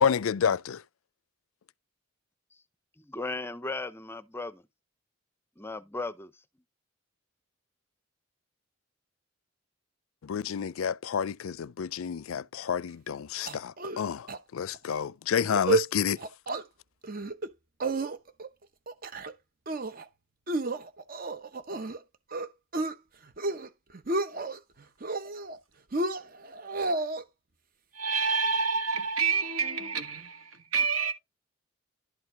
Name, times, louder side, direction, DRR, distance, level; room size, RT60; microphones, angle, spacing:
voice 1, 0.0-0.8 10.2-16.2, left 7 dB, 80° left, 0.4 m, -29 dB
voice 2, 3.0-4.6 5.6-6.3, left 3 dB, 10° left, 0.6 m, -36 dB
sound 1, 13.5-14.0 14.3-14.4 14.7-15.0 15.4-15.9 16.2-16.6 17.0-17.5 17.8-18.5 18.9-19.3 19.7-20.0 20.5-22.0 22.3-22.9 23.3-23.7 23.9-24.6 25.0-25.6 25.9-27.2, right 2 dB, 45° right, 0.8 m, -31 dB
voice 3, 27.9-31.1, right 5 dB, 85° right, 2.1 m, -28 dB
11.5 x 4.6 x 4.6 m
head